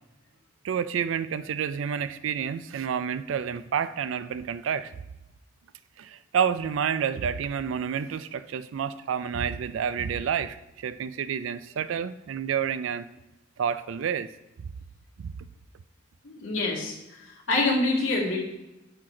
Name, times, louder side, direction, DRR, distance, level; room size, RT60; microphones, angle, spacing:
voice 1, 0.6-4.9 6.0-13.1 13.6-14.3 14.6-14.7 15.2-15.5, right 7 dB, 85° right, 14 dB, 0.3 m, -29 dB
voice 2, 16.2-16.9 17.5-18.4, left 2 dB, 80° left, -3 dB, 1.9 m, -25 dB
8.7 x 4.3 x 4.8 m, 0.95 s
head